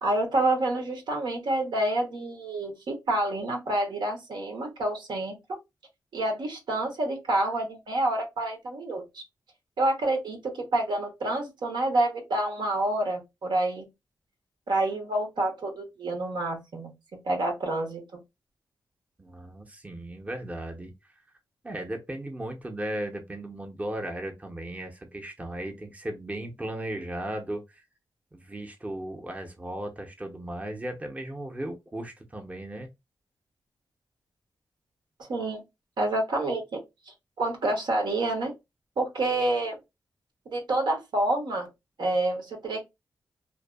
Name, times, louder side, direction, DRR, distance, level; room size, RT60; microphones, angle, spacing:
voice 1, 0.0-5.4 6.1-9.2 9.8-13.9 14.7-16.9 17.2-18.2 35.3-35.6 36.0-36.8 37.4-38.5 39.0-39.8 40.5-41.7 42.0-42.8, right 2 dB, 75° right, 0.9 m, -28 dB
voice 2, 19.2-20.9 21.6-27.8 28.3-32.9, right 1 dB, 20° right, 0.6 m, -36 dB
2.6 x 2.3 x 2.2 m
cardioid pair, 65°, 8 cm